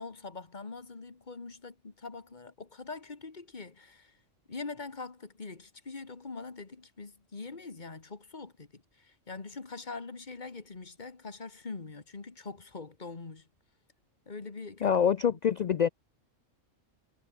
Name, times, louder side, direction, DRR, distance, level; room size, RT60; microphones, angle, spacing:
voice 1, 0.0-4.2 4.5-13.5 14.3-15.0, left 4 dB, 35° left, 1.9 m, -43 dB
voice 2, 14.8-15.9, left 8 dB, 80° left, 0.3 m, -25 dB
omnidirectional pair, 1.3 m